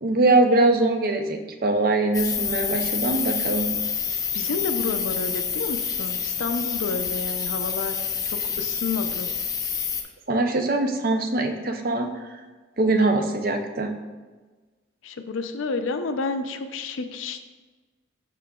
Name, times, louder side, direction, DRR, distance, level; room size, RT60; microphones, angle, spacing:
voice 1, 0.0-3.7 10.3-12.1 12.8-13.9, right 2 dB, 45° right, 5 dB, 0.5 m, -22 dB
sound 1, 2.1-10.0, left 6 dB, 15° left, 0.3 m, -28 dB
voice 2, 4.3-8.0 8.6-9.3 15.0-17.4, left 4 dB, 85° left, 8 dB, 0.5 m, -30 dB
11.0 x 3.8 x 2.3 m, 1.3 s
head